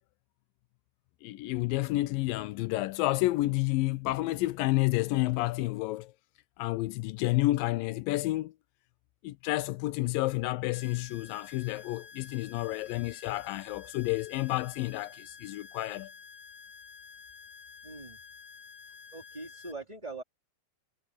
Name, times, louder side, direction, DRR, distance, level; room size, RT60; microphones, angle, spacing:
voice 1, 1.2-6.1 6.6-8.5 9.2-16.1, left 19 dB, 85° left, 2.0 m, -30 dB
sound 1, 10.7-19.7, left 6 dB, 5° left, 0.9 m, -50 dB
voice 2, 17.8-18.2 19.1-20.2, right 3 dB, 10° right, 2.6 m, -42 dB
omnidirectional pair, 4.5 m